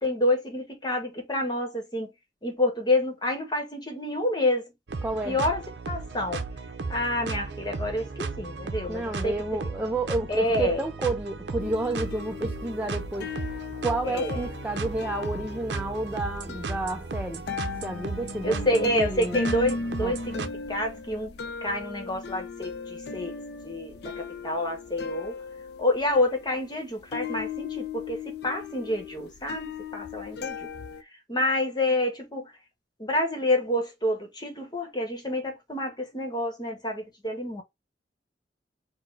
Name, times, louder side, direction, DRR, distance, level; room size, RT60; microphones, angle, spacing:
voice 1, 0.0-2.1 2.4-4.7 5.2-6.4 6.9-9.3 10.3-10.8 14.0-14.4 18.4-23.3 23.6-25.4 25.8-30.7 31.3-32.5 33.0-37.6, left 1 dB, 25° left, 1.0 m, -28 dB
sound 1, 4.9-20.5, right 4 dB, 75° right, 0.6 m, -35 dB
voice 2, 5.0-5.4 8.9-17.4 17.8-19.4 20.0-20.1, right 2 dB, 10° right, 0.4 m, -31 dB
sound 2, 11.6-31.0, left 4 dB, 65° left, 0.5 m, -37 dB
4.4 x 2.1 x 4.5 m
head